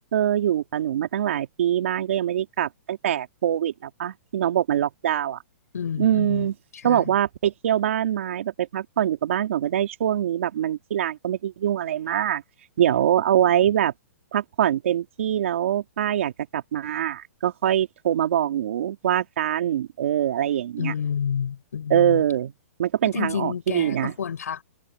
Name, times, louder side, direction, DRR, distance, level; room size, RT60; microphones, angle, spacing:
voice 1, 0.1-5.4 6.0-6.5 6.8-12.4 12.8-13.9 14.3-20.9 21.9-22.5 22.8-24.1, right 10 dB, 55° right, 2.9 m, -24 dB
voice 2, 5.7-6.5 6.7-7.0 20.8-22.2 23.0-24.6, left 7 dB, 85° left, 5.1 m, -29 dB
hypercardioid pair, 170°, 8 cm